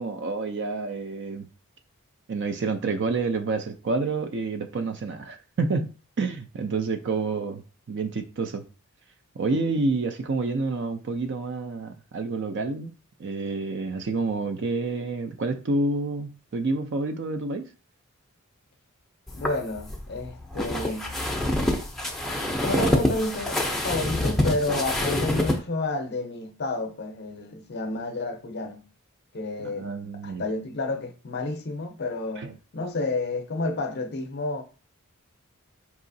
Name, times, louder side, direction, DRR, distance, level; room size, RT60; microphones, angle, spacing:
voice 1, 0.0-1.5 2.3-7.6 7.9-8.6 9.4-12.9 13.2-17.7 22.7-23.0 29.6-30.5 32.4-32.5, right 3 dB, 55° right, 0.4 m, -28 dB
voice 2, 19.3-21.1 22.6-28.9 29.3-29.9 30.2-34.6, left 2 dB, 50° left, 0.6 m, -30 dB
sound 1, 19.3-25.6, left 1 dB, ahead, 0.5 m, -26 dB
4.8 x 2.9 x 2.6 m
head